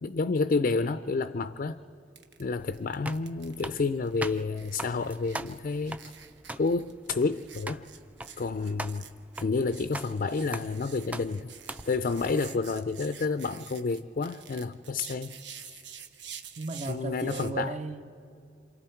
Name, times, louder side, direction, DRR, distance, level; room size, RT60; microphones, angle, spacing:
voice 1, 0.0-1.8 2.4-6.2 6.6-7.8 8.4-9.1 9.4-15.4 16.9-17.7, left 4 dB, 50° left, 0.4 m, -30 dB
sound 1, 2.2-2.4 2.7-17.5, right 8 dB, 85° right, 1.1 m, -48 dB
sound 2, 2.6-12.3, right 2 dB, 10° right, 0.4 m, -42 dB
voice 2, 16.6-18.1, right 3 dB, 40° right, 0.7 m, -35 dB
27.5 x 27.0 x 4.5 m
head